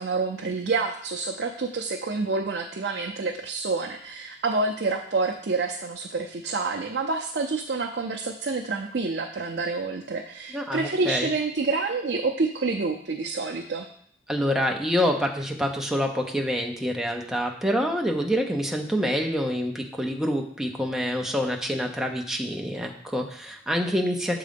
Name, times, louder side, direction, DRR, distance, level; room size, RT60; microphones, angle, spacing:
voice 1, 0.0-13.9, right 3 dB, 65° right, 2 dB, 0.5 m, -28 dB
voice 2, 10.5-11.3 14.3-24.4, equal, 5° right, 1 dB, 0.7 m, -26 dB
7.4 x 3.8 x 5.2 m, 0.63 s
head